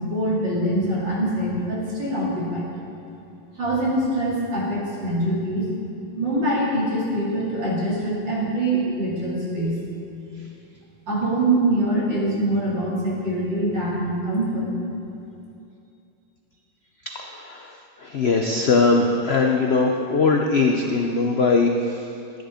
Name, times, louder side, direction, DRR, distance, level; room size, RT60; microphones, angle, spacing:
voice 1, 0.1-2.7 3.6-5.7 6.1-9.8 11.1-14.7, right 1 dB, 70° right, -6 dB, 3.4 m, -24 dB
voice 2, 17.0-22.1, left 3 dB, 80° left, 2 dB, 0.5 m, -21 dB
12.5 x 9.8 x 5.1 m, 2.6 s
omnidirectional pair, 2.1 m